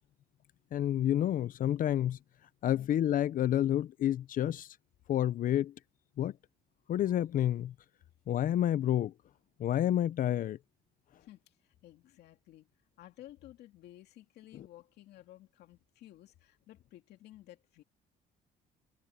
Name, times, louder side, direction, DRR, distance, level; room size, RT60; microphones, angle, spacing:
voice 1, 0.7-2.2 2.6-4.7 5.1-5.7 6.2-6.3 6.9-7.7 8.3-9.1 9.6-10.6, left 11 dB, 55° left, 0.6 m, -29 dB
voice 2, 11.2-12.7 13.0-17.8, left 14 dB, 75° left, 2.5 m, -54 dB
cardioid pair, 110°, 17 cm